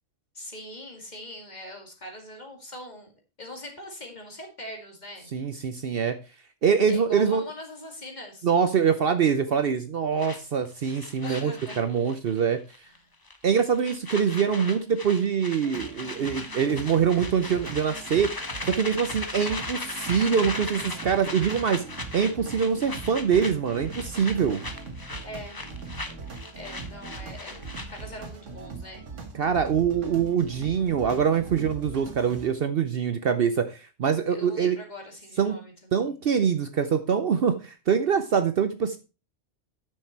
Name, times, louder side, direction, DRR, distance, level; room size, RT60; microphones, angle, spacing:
voice 1, 0.3-5.3 6.9-8.5 11.2-11.8 12.8-13.1 25.2-25.6 26.5-29.1 34.3-36.1, left 1 dB, 35° left, 2 dB, 2.4 m, -42 dB
voice 2, 5.3-6.2 6.6-7.4 8.4-12.6 13.4-18.3 18.6-21.8 22.1-24.6 29.3-34.8 35.4-35.6 35.9-39.0, right 7 dB, 55° right, 9 dB, 0.8 m, -24 dB
sound 1, 10.2-12.5 12.7-13.0 13.3-28.2, left 2 dB, 20° left, 0.8 m, -38 dB
sound 2, 15.6-32.5, right 4 dB, 75° right, 1.9 m, -41 dB
9.4 x 6.6 x 4.3 m, 0.30 s
omnidirectional pair, 1.3 m